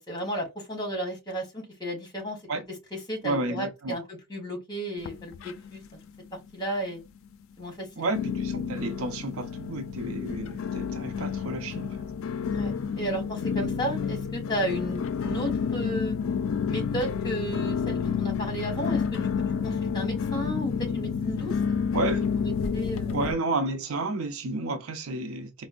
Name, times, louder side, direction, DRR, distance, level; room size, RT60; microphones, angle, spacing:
voice 1, 0.0-2.4 3.1-4.0 4.3-5.8 6.5-7.0 7.6-8.1 12.5-16.2 16.7-19.3 19.6-21.6 22.4-23.1, right 1 dB, 20° left, 1.3 m, -33 dB
voice 2, 3.2-4.0 8.0-12.0 21.9-22.2 23.1-25.7, right 2 dB, 80° right, 0.6 m, -31 dB
sound 1, 5.0-5.9 6.2-6.8 7.3-7.4 8.2-23.3, left 6 dB, 70° left, 0.4 m, -30 dB
4.3 x 2.0 x 2.4 m
head